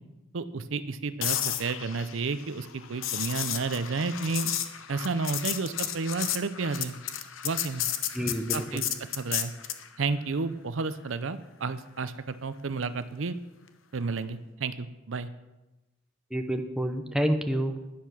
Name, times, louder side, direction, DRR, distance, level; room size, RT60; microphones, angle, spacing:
voice 1, 0.3-4.5 4.9-7.0 7.4-7.9 8.5-9.5 10.0-13.4 13.9-15.3, right 4 dB, 70° right, 12 dB, 0.6 m, -31 dB
sound 1, 1.2-9.9 14.0-14.3, left 10 dB, 75° left, 0.9 m, -33 dB
voice 2, 8.1-8.9 16.3-17.7, equal, 5° right, 5 dB, 0.8 m, -28 dB
10.5 x 10.5 x 6.2 m, 1.0 s
head